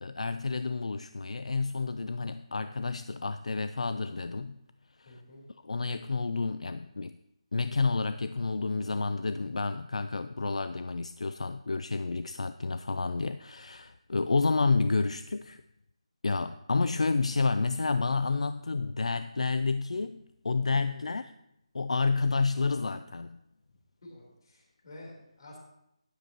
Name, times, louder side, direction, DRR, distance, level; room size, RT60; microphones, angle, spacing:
voice 1, 0.0-4.6 5.0-5.1 5.6-7.2 7.5-15.6 16.2-21.2 21.7-23.4, left 4 dB, 80° left, 11 dB, 0.4 m, -30 dB
voice 2, 5.0-5.4 20.8-21.1 24.0-25.6, left 1 dB, 45° left, -1 dB, 4.0 m, -50 dB
13.0 x 10.0 x 3.1 m, 0.80 s
figure-of-eight pair, 170°, 3 cm